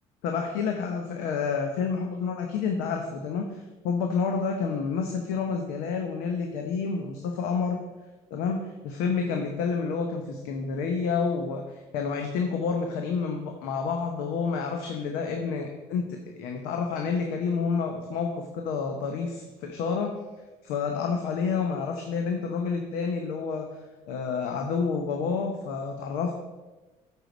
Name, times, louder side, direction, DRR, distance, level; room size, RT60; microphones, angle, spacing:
voice 1, 0.2-7.8 8.3-20.2 20.6-23.7 24.1-26.3, left 5 dB, 85° left, 3 dB, 0.8 m, -29 dB
7.9 x 4.7 x 5.2 m, 1.2 s
supercardioid pair, 90°, 15 cm